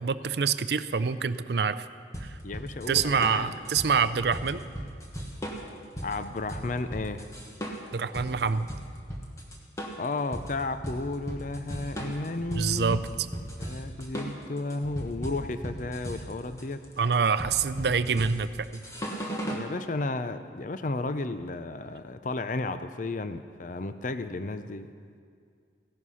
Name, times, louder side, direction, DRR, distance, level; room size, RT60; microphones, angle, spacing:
voice 1, 0.0-1.9 2.2-2.4 2.9-4.6 7.9-8.7 12.5-13.0 17.0-18.8, right 5 dB, 65° right, 13 dB, 0.5 m, -26 dB
sound 1, 2.1-19.7, equal, 15° left, 1.4 m, -37 dB
voice 2, 2.4-3.5 6.0-7.3 10.0-13.0 13.6-16.8 19.3-24.9, left 2 dB, 45° left, 10 dB, 0.5 m, -33 dB
16.0 x 11.0 x 5.6 m, 2.1 s
head